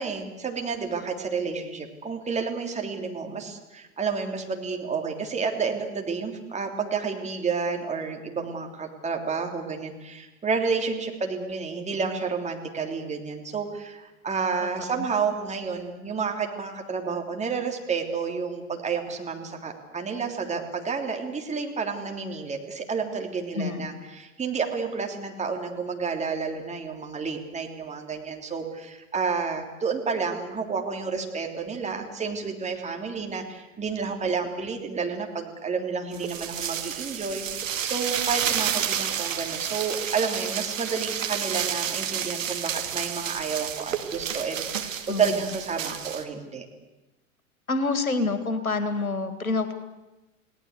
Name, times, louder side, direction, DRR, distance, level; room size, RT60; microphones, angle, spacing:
voice 1, 0.0-46.6, right 5 dB, 15° right, 3 dB, 3.4 m, -30 dB
voice 2, 23.5-23.9 45.1-45.2 47.7-49.7, left 3 dB, 80° left, 10 dB, 2.1 m, -27 dB
sound 1, 36.1-46.2, right 9 dB, 65° right, 2.3 m, -30 dB
29.5 x 18.5 x 8.2 m, 1.1 s
figure-of-eight pair, 85°, 41 cm